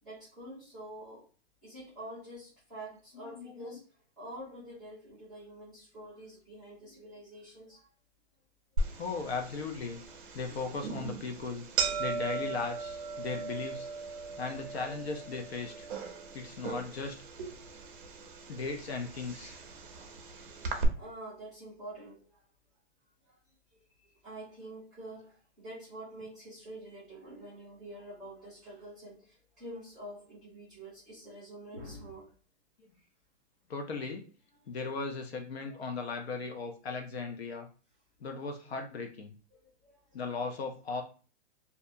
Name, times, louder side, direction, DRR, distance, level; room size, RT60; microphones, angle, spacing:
voice 1, 0.0-1.3 1.6-7.9 17.4-17.8 20.9-22.4 23.2-23.4 23.7-32.3 33.0-33.1 34.7-34.8 35.6-35.7 39.5-40.2, right 1 dB, ahead, -12 dB, 0.7 m, -47 dB
voice 2, 3.2-3.8 9.0-10.0 10.3-11.6 12.0-13.9 14.4-15.9 16.3-17.2 18.5-19.6 33.7-34.2 34.7-37.7 38.2-39.3 40.1-41.0, left 4 dB, 60° left, 4 dB, 0.5 m, -37 dB
sound 1, 8.8-20.9, right 4 dB, 45° right, 0.5 m, -38 dB
2.6 x 2.2 x 2.5 m, 0.37 s
hypercardioid pair, 180°, 36 cm